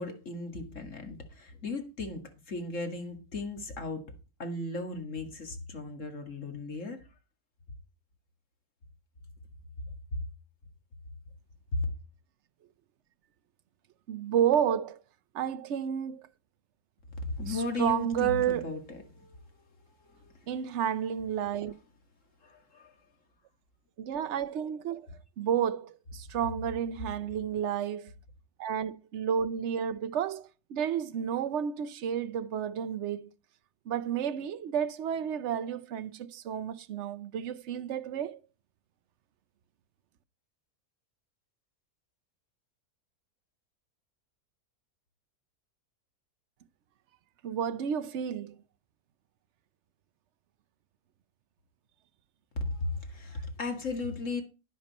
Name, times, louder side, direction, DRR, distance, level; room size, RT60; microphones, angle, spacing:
voice 1, 0.0-4.0 4.4-7.1 10.1-10.2 11.7-11.9 17.1-19.4 22.4-22.9 52.6-54.4, left 2 dB, 50° left, 2.3 m, -36 dB
voice 2, 14.1-15.0 15.3-16.2 17.5-18.8 20.5-21.7 24.0-25.1 25.4-28.1 28.6-33.3 33.9-38.4 47.4-48.6, right 9 dB, 55° right, 0.9 m, -31 dB
10.5 x 10.5 x 4.2 m
omnidirectional pair, 1.7 m